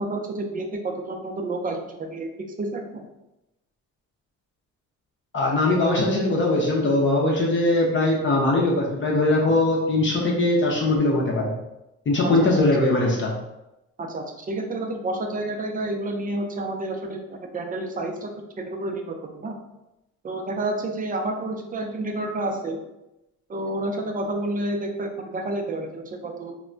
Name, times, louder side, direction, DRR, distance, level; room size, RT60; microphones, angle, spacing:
voice 1, 0.0-2.3 2.6-3.1 12.4-12.5 14.0-19.5 20.2-22.8 23.5-26.5, right 2 dB, 30° right, 3 dB, 0.5 m, -30 dB
voice 2, 5.3-11.5 12.1-13.3, left 2 dB, 40° left, -2 dB, 0.6 m, -21 dB
2.2 x 2.2 x 3.8 m, 0.92 s
cardioid pair, 90°, 30 cm